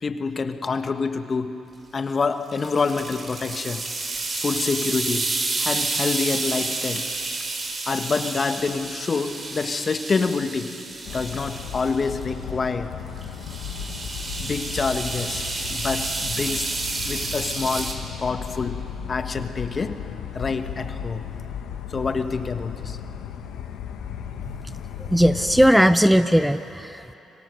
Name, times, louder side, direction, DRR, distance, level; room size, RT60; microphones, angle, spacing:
voice 1, 0.0-1.6 1.9-3.8 4.4-7.1 7.8-10.8 11.1-13.0 14.4-15.4 15.7-16.7 17.0-20.1 20.3-21.3 21.9-23.0, left 4 dB, 40° left, 8 dB, 1.5 m, -27 dB
sound 1, 2.5-12.1 13.2-17.9, right 3 dB, 40° right, 4.0 m, -30 dB
sound 2, 11.0-25.7, left 8 dB, 80° left, 1.2 m, -35 dB
voice 2, 25.1-27.1, equal, 5° right, 11 dB, 0.7 m, -18 dB
26.0 x 23.5 x 6.6 m, 3.0 s
supercardioid pair, 65°, 0 cm